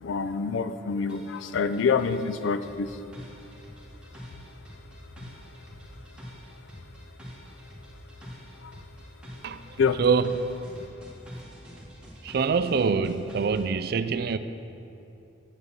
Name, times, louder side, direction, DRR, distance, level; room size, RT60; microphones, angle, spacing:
voice 1, 0.0-2.9 9.8-10.0, left 5 dB, 75° left, 11 dB, 0.4 m, -26 dB
sound 1, 1.1-13.7, equal, 5° right, 1.4 m, -46 dB
voice 2, 9.4-10.4 12.2-14.4, right 5 dB, 55° right, 12 dB, 0.4 m, -25 dB
7.4 x 6.6 x 7.1 m, 2.8 s
head